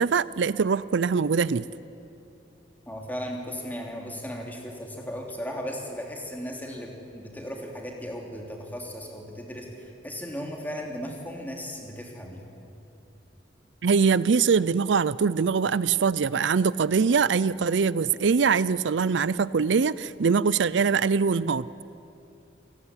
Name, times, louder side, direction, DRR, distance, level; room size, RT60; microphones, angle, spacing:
voice 1, 0.0-1.7 13.8-21.7, right 5 dB, 80° right, 18 dB, 0.5 m, -23 dB
voice 2, 2.8-12.5, equal, 10° left, 1 dB, 3.3 m, -36 dB
28.5 x 18.5 x 9.8 m, 2.8 s
head